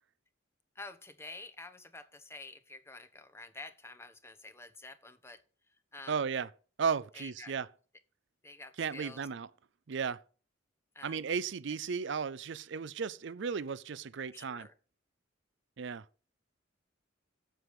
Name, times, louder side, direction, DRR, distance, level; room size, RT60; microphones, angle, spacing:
voice 1, 0.7-5.4 5.7-6.2 7.1-7.5 8.4-9.3 10.9-11.2 14.3-14.7, left 2 dB, 15° left, 1.0 m, -49 dB
voice 2, 6.1-6.5 6.8-7.7 8.8-9.5 9.9-10.2 11.0-14.7 15.8-16.1, right 6 dB, 60° right, 0.5 m, -35 dB
7.9 x 7.7 x 8.2 m
head